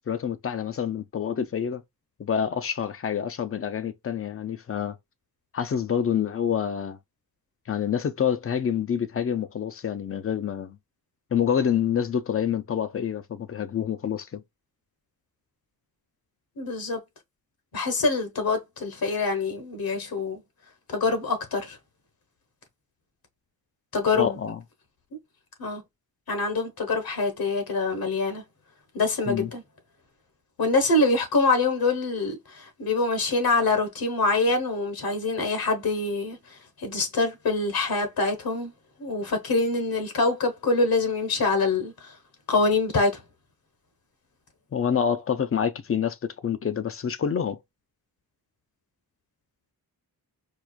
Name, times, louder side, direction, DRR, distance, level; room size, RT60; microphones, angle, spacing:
voice 1, 0.1-1.8 2.2-5.0 5.5-7.0 7.7-10.8 11.3-14.4 24.2-24.6 29.3-29.5 44.7-46.2 46.4-47.6, left 8 dB, 40° left, 0.4 m, -27 dB
voice 2, 16.6-17.0 17.7-20.4 20.9-21.8 23.9-24.4 25.6-25.8 26.3-28.4 28.9-29.6 30.6-36.4 36.8-38.7 39.0-42.1 42.5-43.2, left 3 dB, 70° left, 1.2 m, -25 dB
4.6 x 2.4 x 2.3 m
wide cardioid pair, 135°, 38 cm